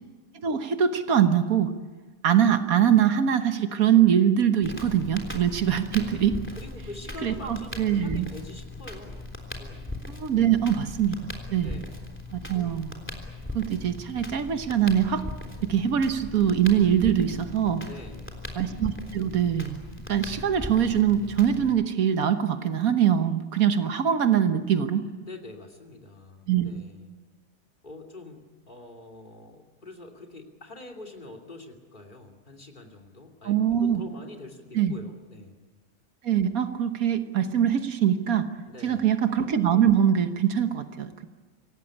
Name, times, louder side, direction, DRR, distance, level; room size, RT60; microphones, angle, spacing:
voice 1, 0.3-1.7 2.2-6.4 7.2-8.3 10.1-11.8 12.3-13.0 13.5-15.2 15.6-17.8 18.5-19.8 20.1-25.0 26.5-26.7 33.4-34.0 34.7-34.9 36.2-38.5 38.8-41.3, right 9 dB, 85° right, 8 dB, 1.6 m, -23 dB
Crackle, 4.6-21.7, left 2 dB, 10° left, 3.4 m, -39 dB
voice 2, 6.5-9.9 11.6-12.0 17.8-18.4 25.2-27.1 27.8-35.6 38.6-39.1, left 2 dB, 35° left, 2 dB, 3.0 m, -45 dB
25.5 x 17.0 x 9.9 m, 1.3 s
omnidirectional pair, 1.5 m